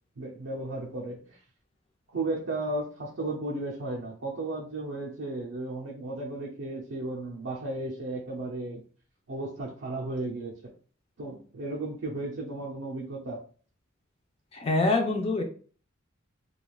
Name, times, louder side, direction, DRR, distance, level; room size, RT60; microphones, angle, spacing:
voice 1, 0.2-1.4 2.1-8.8 9.3-10.5 11.2-13.4, right 2 dB, 70° right, -3 dB, 0.5 m, -34 dB
voice 2, 14.5-15.4, left 2 dB, 30° left, 4 dB, 0.4 m, -25 dB
3.1 x 2.3 x 2.3 m, 0.42 s
head